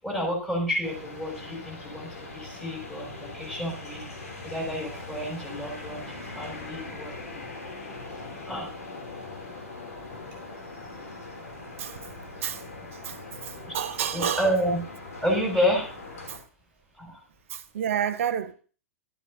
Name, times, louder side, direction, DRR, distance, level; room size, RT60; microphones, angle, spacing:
voice 1, 0.0-4.0 4.4-7.2 8.5-8.7 13.7-13.8 14.1-14.8 15.2-15.9 17.0-17.2, equal, 10° left, 7.0 m, -29 dB
sound 1, 0.8-16.4, left 3 dB, 70° left, 3.0 m, -41 dB
voice 2, 13.0-14.5 16.3-16.4 17.5-18.5, right 9 dB, 60° right, 0.9 m, -30 dB
12.5 x 11.0 x 2.8 m
figure-of-eight pair, 105°, 8 cm